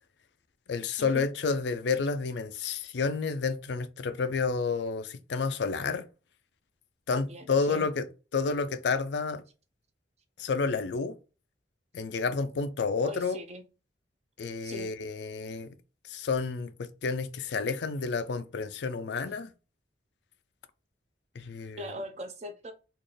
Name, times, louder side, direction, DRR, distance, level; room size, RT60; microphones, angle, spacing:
voice 1, 0.7-6.1 7.1-8.1 8.3-9.4 10.4-11.1 11.9-13.4 14.4-15.7 16.1-19.5 21.4-21.9, left 4 dB, 65° left, 0.4 m, -30 dB
voice 2, 7.1-7.9 13.0-13.6 14.6-14.9 21.8-22.7, equal, 35° right, 0.6 m, -41 dB
4.1 x 2.5 x 3.2 m
head